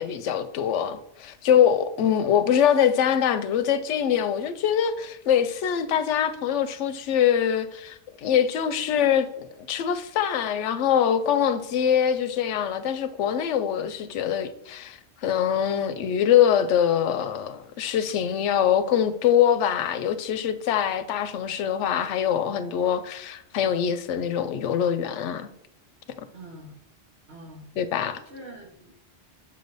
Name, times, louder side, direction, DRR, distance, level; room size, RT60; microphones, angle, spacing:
voice 1, 0.0-25.5 27.8-28.2, left 9 dB, 90° left, 0.9 m, -23 dB
voice 2, 26.3-26.8 27.3-27.7 28.3-28.9, right 1 dB, 65° right, 1.6 m, -44 dB
7.2 x 3.3 x 4.0 m
omnidirectional pair, 1.2 m